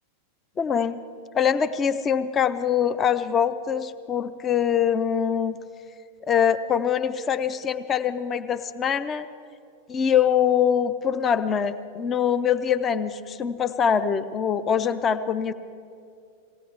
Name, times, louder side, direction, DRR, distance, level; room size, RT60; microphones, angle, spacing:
voice 1, 0.6-1.0 1.3-5.6 6.3-9.3 9.9-15.5, left 8 dB, 25° left, 13 dB, 0.5 m, -23 dB
19.0 x 16.5 x 3.3 m, 2.4 s
figure-of-eight pair, 90°, 0 cm